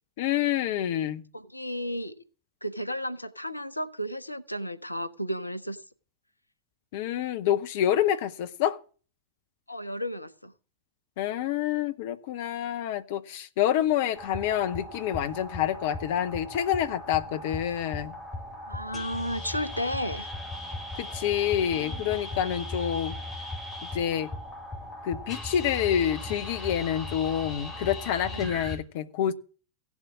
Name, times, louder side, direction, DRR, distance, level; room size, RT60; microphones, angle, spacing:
voice 1, 0.2-1.2 6.9-8.8 11.2-18.1 21.0-23.2 23.9-24.3 25.0-29.3, left 10 dB, 50° left, 0.7 m, -27 dB
voice 2, 1.3-2.1 2.6-5.8 9.7-10.5 18.7-20.3 28.3-28.5, equal, 85° left, 0.8 m, -33 dB
sound 1, 14.1-28.8, left 1 dB, 15° left, 5.9 m, -38 dB
16.0 x 7.3 x 6.1 m
figure-of-eight pair, 90°, 0 cm